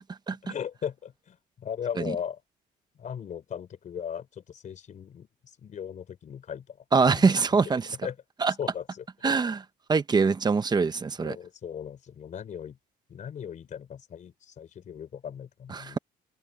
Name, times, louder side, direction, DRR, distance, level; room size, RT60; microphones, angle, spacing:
voice 1, 0.4-2.4 3.0-7.4 8.0-8.2 8.6-9.4 11.2-12.8 13.1-16.0, left 8 dB, 45° left, 4.1 m, -38 dB
voice 2, 6.9-8.0 8.4-8.5 9.2-9.6 9.9-11.4 15.7-16.0, right 4 dB, 25° right, 1.1 m, -23 dB
cardioid pair, 110°, 17 cm